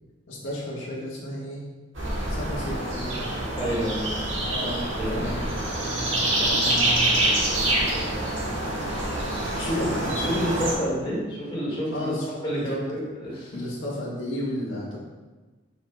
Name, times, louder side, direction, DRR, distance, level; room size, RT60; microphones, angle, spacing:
voice 1, 0.3-1.6 2.3-3.2 4.5-5.4 5.8-6.1 6.4-7.2 9.6-10.4 11.9-12.8 13.5-15.0, equal, 80° left, -6 dB, 1.4 m, -33 dB
sound 1, 1.9-10.7, right 1 dB, 85° right, 1.5 m, -26 dB
voice 2, 3.6-4.1 4.6-5.3 9.5-9.9 10.2-12.1 12.4-13.6, equal, 30° left, -7 dB, 1.9 m, -29 dB
7.3 x 5.9 x 2.2 m, 1.3 s
head